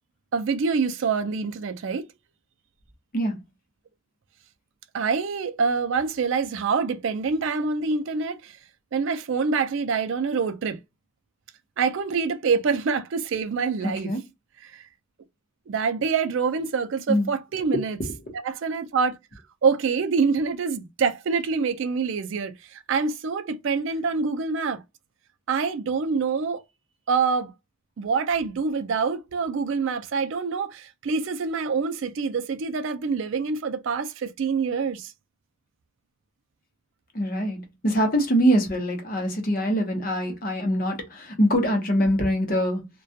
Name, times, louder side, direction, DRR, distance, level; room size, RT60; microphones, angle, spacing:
voice 1, 0.3-2.0 4.9-8.6 8.9-10.8 11.8-14.1 14.6-14.8 15.7-18.0 18.4-19.1 19.6-24.8 25.5-26.6 27.1-27.5 28.0-35.1, right 5 dB, 60° right, 0.4 m, -26 dB
voice 2, 13.8-14.2 17.1-17.3 37.1-42.9, equal, 40° left, 0.7 m, -23 dB
2.3 x 2.2 x 2.6 m
head